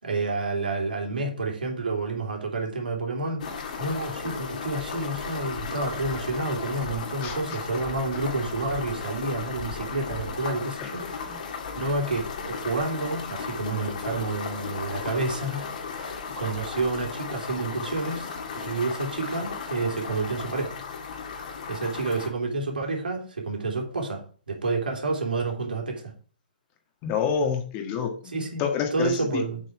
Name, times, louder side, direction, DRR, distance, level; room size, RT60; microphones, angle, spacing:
voice 1, 0.0-11.3 11.7-18.3 18.6-20.8 21.2-21.4 21.7-24.2 24.5-26.1 28.3-29.6, right 3 dB, 70° right, 1 dB, 3.2 m, -29 dB
sound 1, 3.4-22.3, left 5 dB, 55° left, 2.3 m, -35 dB
voice 2, 7.2-7.6 10.8-10.9 11.2-11.4 27.0-29.4, left 7 dB, 25° left, 4 dB, 1.6 m, -28 dB
7.5 x 6.6 x 4.8 m, 0.39 s
figure-of-eight pair, 130°, 5 cm